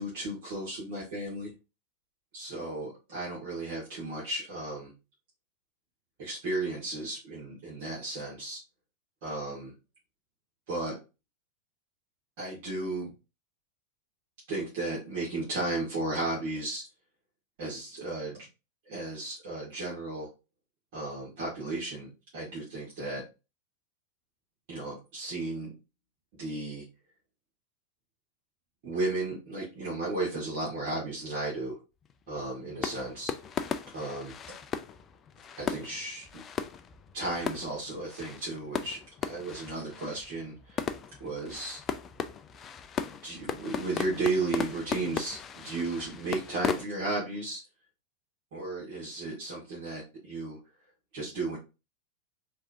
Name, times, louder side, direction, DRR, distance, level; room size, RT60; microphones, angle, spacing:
voice 1, 0.0-1.5 2.3-4.9 6.2-8.6 9.2-9.7 10.7-11.0 12.4-13.1 14.5-16.8 17.6-18.5 18.9-20.3 20.9-23.2 24.7-25.7 26.4-26.9 28.8-31.8 32.3-33.3 33.9-34.4 35.6-36.4 37.1-40.8 41.2-41.8 43.2-47.6 48.5-50.6 51.1-51.6, right 2 dB, 50° right, -6 dB, 1.9 m, -34 dB
sound 1, 32.0-46.9, left 7 dB, 25° left, 0.4 m, -37 dB
4.6 x 3.4 x 2.7 m, 0.28 s
figure-of-eight pair, 90°, 0 cm